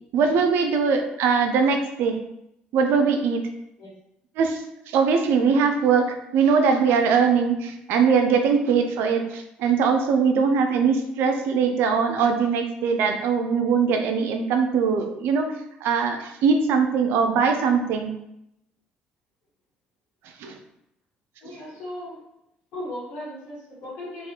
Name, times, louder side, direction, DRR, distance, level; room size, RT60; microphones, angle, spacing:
voice 1, 0.1-2.2 2.7-3.4 4.4-4.6 4.9-15.5 15.8-18.1 20.4-20.5, right 5 dB, 75° right, 5 dB, 0.4 m, -21 dB
voice 2, 21.4-22.2 22.7-24.3, left 1 dB, 70° left, -8 dB, 1.3 m, -36 dB
3.2 x 2.4 x 2.8 m, 0.81 s
supercardioid pair, 75°, 4 cm